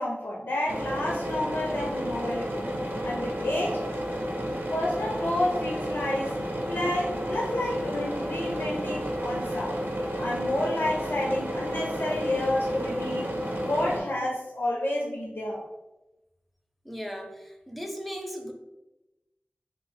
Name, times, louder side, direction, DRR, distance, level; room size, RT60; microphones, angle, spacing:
voice 1, 0.0-2.7 3.0-3.8 4.7-6.3 6.7-9.8 10.1-13.3 13.6-15.6, left 1 dB, 75° left, -3 dB, 0.5 m, -30 dB
sound 1, 0.7-14.0, equal, 60° right, 0.6 m, -31 dB
voice 2, 16.8-18.5, equal, ahead, 3 dB, 0.5 m, -37 dB
3.0 x 2.0 x 4.1 m, 1.0 s
wide cardioid pair, 65°, 4 cm